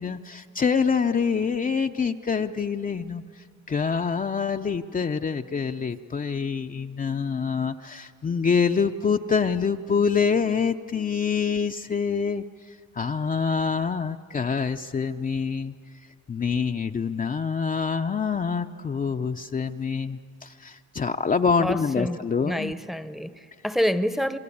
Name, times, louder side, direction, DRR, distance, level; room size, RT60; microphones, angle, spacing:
voice 1, 0.0-15.8 16.3-22.7, left 6 dB, 30° left, 0.6 m, -26 dB
voice 2, 21.6-24.4, equal, ahead, 0.9 m, -28 dB
27.5 x 21.5 x 8.6 m
cardioid pair, 90°, 30 cm